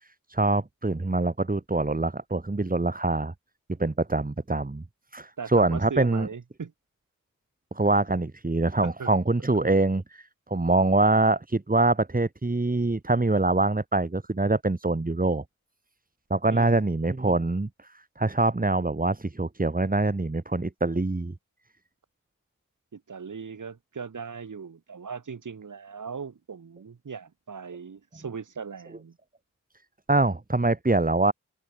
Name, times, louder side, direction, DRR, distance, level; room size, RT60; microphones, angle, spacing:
voice 1, 0.3-3.3 3.8-4.8 5.1-6.3 7.7-15.4 16.3-17.7 18.2-21.3 30.1-31.3, right 2 dB, 25° right, 2.3 m, -24 dB
voice 2, 5.4-6.7 8.8-9.1 16.5-16.9 22.9-29.2, right 6 dB, 75° right, 3.8 m, -39 dB
cardioid pair, 45°, 31 cm